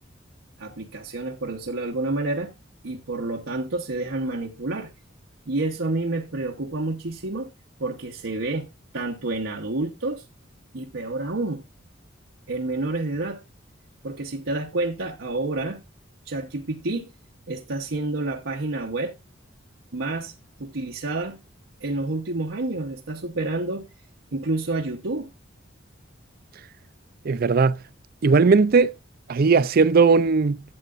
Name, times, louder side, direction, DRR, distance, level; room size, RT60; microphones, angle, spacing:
voice 1, 0.6-2.5 2.8-4.9 5.5-7.5 7.8-8.7 8.9-10.2 10.7-11.6 12.5-13.4 14.0-15.8 16.3-17.1 17.5-19.1 19.9-20.3 20.6-21.4 21.8-23.9 24.3-25.3, right 2 dB, 80° right, 1.0 m, -29 dB
voice 2, 27.3-27.8 28.2-28.9 29.3-30.6, right 4 dB, 50° right, 0.4 m, -17 dB
12.0 x 8.0 x 2.5 m
head